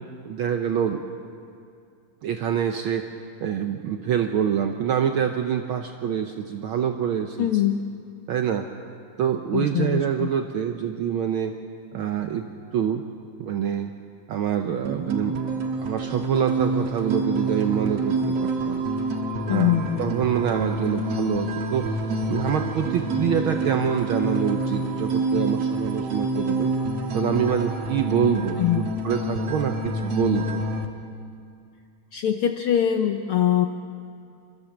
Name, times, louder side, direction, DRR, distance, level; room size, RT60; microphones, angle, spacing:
voice 1, 0.2-1.0 2.2-3.1 3.4-7.5 8.3-8.7 9.2-11.6 11.9-12.5 12.7-13.0 13.4-13.9 14.3-15.4 15.8-18.8 19.5-21.9 22.3-26.7 27.1-30.6, right 8 dB, 90° right, 5 dB, 1.1 m, -26 dB
voice 2, 7.4-7.8 9.5-10.3 19.5-20.1 28.6-28.9 32.1-33.7, left 10 dB, 85° left, 5 dB, 1.2 m, -23 dB
sound 1, 14.8-30.9, right 2 dB, 65° right, 2.2 m, -27 dB
27.5 x 13.5 x 7.2 m, 2.4 s
omnidirectional pair, 3.3 m